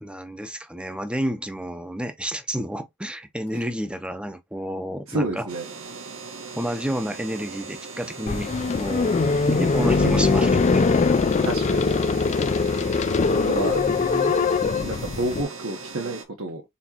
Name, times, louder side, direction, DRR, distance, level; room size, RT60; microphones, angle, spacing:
voice 1, 0.0-5.5 6.6-8.5 8.8-9.1 9.5-10.9 13.6-14.4 16.0-16.2, equal, 5° right, 0.6 m, -30 dB
voice 2, 5.1-5.6 9.7-10.2 11.4-12.0 13.5-13.8 14.4-14.5 14.8-16.6, right 2 dB, 70° right, 1.1 m, -29 dB
sound 1, 5.5-16.2, right 4 dB, 90° right, 1.4 m, -39 dB
sound 2, 8.3-15.4, left 4 dB, 35° left, 0.4 m, -22 dB
4.2 x 4.1 x 2.8 m
head